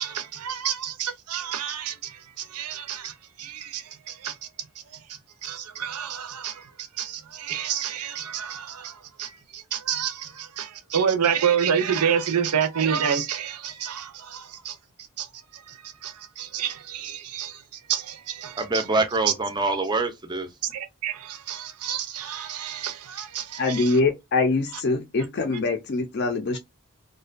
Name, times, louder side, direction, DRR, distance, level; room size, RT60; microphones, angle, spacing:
voice 1, 0.0-4.4 5.4-14.8 15.2-15.3 15.7-17.6 17.9-18.8 20.7-24.0, right 8 dB, 90° right, 0.5 m, -29 dB
voice 2, 18.6-20.5, right 3 dB, 20° right, 0.4 m, -25 dB
voice 3, 23.6-26.6, left 3 dB, 50° left, 0.4 m, -24 dB
2.4 x 2.2 x 2.4 m
head